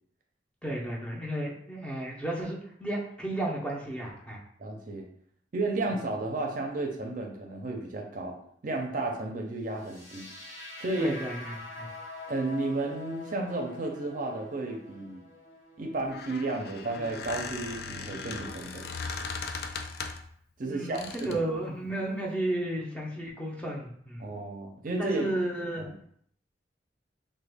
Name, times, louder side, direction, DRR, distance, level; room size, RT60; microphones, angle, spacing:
voice 1, 0.6-4.4 11.0-11.9 20.7-24.3 24.8-25.9, right 1 dB, 5° left, -2 dB, 0.5 m, -33 dB
voice 2, 4.6-5.1 5.5-8.4 8.6-10.3 10.8-11.1 12.3-15.2 15.8-18.9 20.6-21.4 24.2-25.3 25.8-25.9, right 2 dB, 50° right, 2 dB, 0.5 m, -32 dB
sound 1, 9.8-17.8, left 2 dB, 75° left, 1.2 m, -46 dB
Squeak, 15.9-20.3 20.9-21.5, left 4 dB, 60° left, 0.4 m, -38 dB
3.0 x 2.2 x 3.4 m, 0.64 s
head